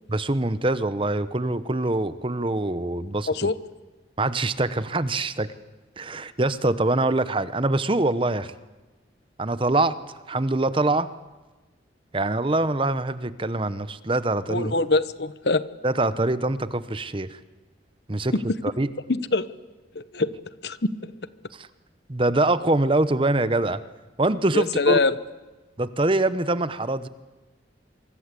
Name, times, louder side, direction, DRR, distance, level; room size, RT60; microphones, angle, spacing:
voice 1, 0.1-3.3 4.2-5.5 6.0-8.5 9.4-10.0 10.3-11.1 12.1-14.7 15.8-17.4 18.1-18.3 18.8-18.9 21.5-21.7 22.1-23.8 24.2-25.0 25.8-27.1, right 2 dB, 30° right, 14 dB, 0.9 m, -24 dB
voice 2, 14.5-15.6 18.3-18.4 19.1-19.5 19.9-20.3 20.6-20.8 24.5-25.2, left 3 dB, 65° left, 15 dB, 1.0 m, -23 dB
26.5 x 24.5 x 8.3 m, 1.2 s
head